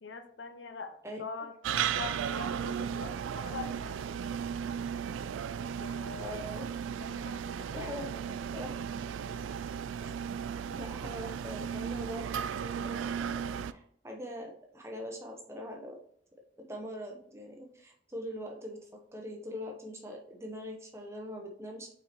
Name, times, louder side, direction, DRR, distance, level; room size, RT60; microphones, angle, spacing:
voice 1, 0.0-4.2 5.8-6.5 7.0-8.3, left 4 dB, 75° left, 8 dB, 0.7 m, -44 dB
sound 1, 1.6-13.7, right 8 dB, 90° right, 0.3 m, -35 dB
voice 2, 6.2-6.7 7.7-8.8 10.0-10.3 10.7-16.0 16.6-18.9 19.1-21.9, equal, 15° right, 1 dB, 0.8 m, -42 dB
6.2 x 4.3 x 4.3 m, 0.65 s
head